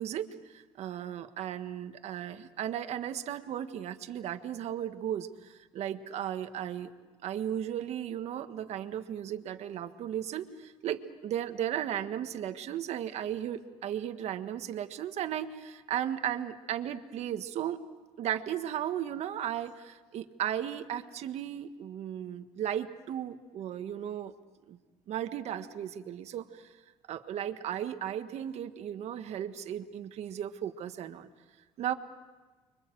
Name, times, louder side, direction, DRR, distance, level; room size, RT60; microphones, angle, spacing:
voice 1, 0.0-6.9 7.2-17.8 18.2-24.3 24.7-24.8 25.1-26.7 27.1-31.3 31.8-31.9, right 10 dB, 65° right, 8 dB, 1.6 m, -35 dB
30.0 x 24.5 x 7.8 m, 1.3 s
cardioid pair, 100°, 12 cm